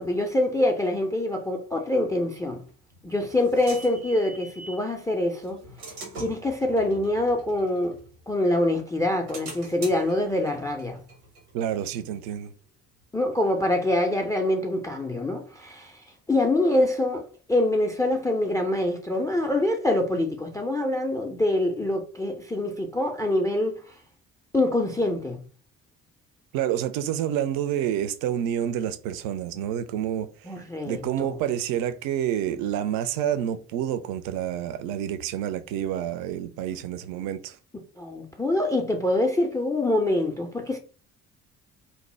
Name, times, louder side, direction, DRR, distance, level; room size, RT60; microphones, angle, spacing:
voice 1, 0.0-2.6 3.0-5.6 6.2-8.0 8.3-11.0 13.1-16.0 16.3-23.8 24.5-25.4 30.5-31.4 38.0-40.8, left 1 dB, 10° left, 0.3 m, -25 dB
sound 1, 2.7-4.9 5.4-8.5 8.9-12.4, right 3 dB, 85° right, 0.8 m, -44 dB
voice 2, 11.5-12.5 26.5-30.5 30.8-37.6, right 10 dB, 50° right, 0.4 m, -28 dB
2.6 x 2.0 x 3.1 m
figure-of-eight pair, 45°, 44 cm